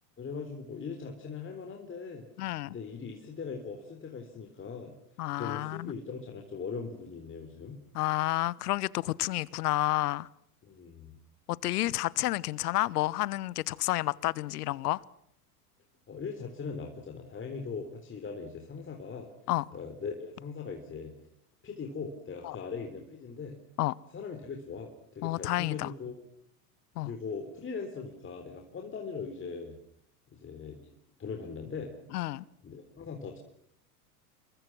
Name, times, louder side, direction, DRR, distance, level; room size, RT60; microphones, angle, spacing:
voice 1, 0.2-2.3 2.7-4.9 5.4-7.8 10.6-11.1 16.1-19.3 19.7-21.1 21.6-23.6 24.1-26.3 27.0-29.8 30.3-30.9 31.2-31.9 32.6-33.4, left 5 dB, 25° left, 3.8 m, -40 dB
voice 2, 2.4-2.7 5.2-5.9 7.9-10.3 11.5-15.0 19.5-19.6 22.4-22.6 23.8-23.9 25.2-25.9 27.0-27.1 32.1-32.4, left 17 dB, 70° left, 1.1 m, -30 dB
28.0 x 22.5 x 6.2 m
hypercardioid pair, 95°, 47 cm